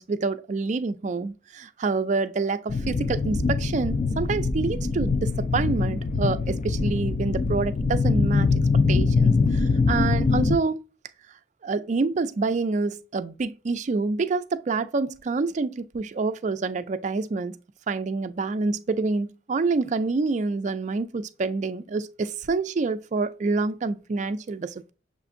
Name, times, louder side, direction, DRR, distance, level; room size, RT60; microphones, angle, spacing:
voice 1, 0.0-8.5 8.9-10.8 11.6-17.6 17.9-24.9, right 4 dB, 40° right, 0.3 m, -27 dB
sound 1, 2.7-10.6, left 4 dB, 40° left, 0.4 m, -23 dB
6.9 x 2.5 x 2.5 m
head